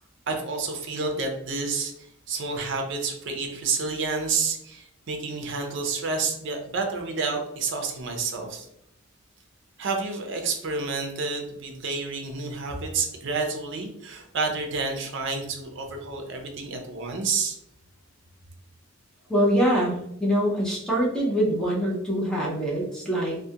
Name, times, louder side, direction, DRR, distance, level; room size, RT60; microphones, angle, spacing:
voice 1, 0.3-1.9 2.3-8.7 9.8-17.6, right 4 dB, 55° right, 3 dB, 0.5 m, -29 dB
voice 2, 19.3-23.4, equal, 5° left, -4 dB, 0.5 m, -24 dB
2.3 x 2.1 x 2.7 m, 0.78 s
head